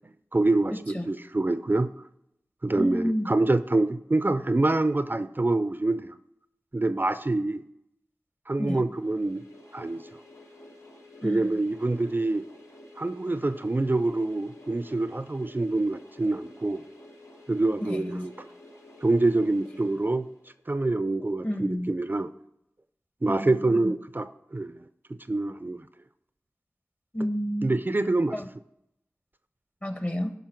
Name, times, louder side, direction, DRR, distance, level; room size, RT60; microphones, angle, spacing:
voice 1, 0.3-1.9 2.6-6.1 6.7-7.6 8.5-9.4 9.7-10.0 11.2-12.5 13.0-16.8 17.5-18.3 19.0-20.3 20.7-22.3 23.2-24.8 25.3-25.8 27.6-28.4, right 2 dB, 40° right, 12 dB, 0.5 m, -26 dB
voice 2, 2.8-3.3 8.6-8.9 11.2-11.4 17.8-18.3 21.4-21.9 23.3-23.9 27.1-27.7 28.3-28.5 29.8-30.3, equal, 30° left, 6 dB, 1.3 m, -30 dB
sound 1, 8.9-20.7, left 1 dB, 65° left, 1.7 m, -51 dB
12.5 x 5.4 x 4.5 m, 0.79 s
wide cardioid pair, 45°, 5 cm